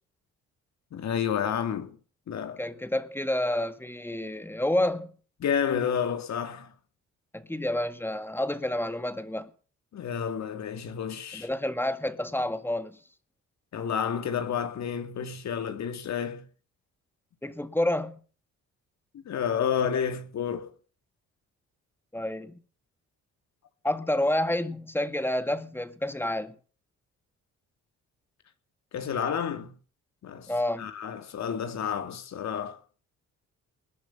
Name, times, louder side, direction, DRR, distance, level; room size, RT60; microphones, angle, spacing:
voice 1, 0.9-2.0 2.3-2.6 5.4-6.7 9.9-11.5 13.7-16.4 19.1-20.7 28.9-29.7 30.2-30.5 30.8-32.8, left 8 dB, 65° left, 2.4 m, -30 dB
voice 2, 2.6-5.1 7.3-9.5 11.3-13.0 17.4-18.2 22.1-22.5 23.8-26.6 30.5-30.9, left 1 dB, 5° left, 1.9 m, -29 dB
21.0 x 11.0 x 5.7 m
cardioid pair, 90°, 30 cm